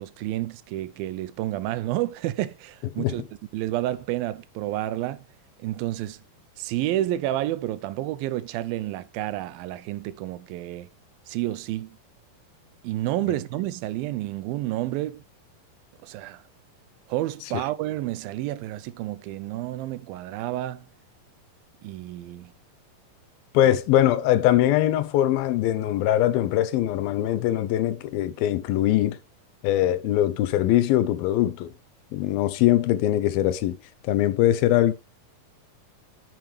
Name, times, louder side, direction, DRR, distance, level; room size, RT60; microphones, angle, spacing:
voice 1, 0.0-3.2 3.5-5.2 5.6-6.2 6.6-10.9 11.3-12.0 12.8-15.2 16.0-16.4 17.1-20.8 21.8-22.5 23.6-23.7, right 14 dB, 85° right, 2.4 m, -30 dB
voice 2, 23.5-29.2 29.6-31.7 32.1-33.8 34.0-34.9, left 13 dB, 85° left, 2.6 m, -22 dB
9.1 x 7.0 x 3.3 m
omnidirectional pair, 4.2 m